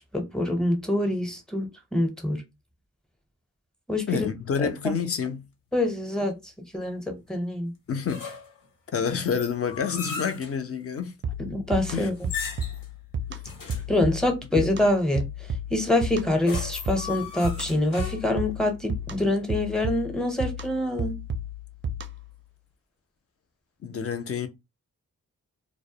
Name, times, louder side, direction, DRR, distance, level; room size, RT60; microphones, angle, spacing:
voice 1, 0.1-2.4 3.9-4.3 4.6-4.7 5.7-6.4 6.7-7.7 11.4-12.1 13.9-15.3 15.7-21.2, left 1 dB, ahead, 0.6 m, -25 dB
voice 2, 4.1-5.4 7.9-8.3 8.9-11.1 11.9-12.1 13.3-13.4 14.5-14.7 23.8-24.5, left 6 dB, 45° left, 0.5 m, -28 dB
sound 1, 8.1-8.6 9.2-10.6 12.1-12.9 13.4-13.9 16.2-18.5, left 5 dB, 80° left, 0.8 m, -37 dB
sound 2, 11.2-22.4, right 1 dB, 35° right, 0.4 m, -33 dB
2.2 x 2.0 x 2.7 m
cardioid pair, 80°, 33 cm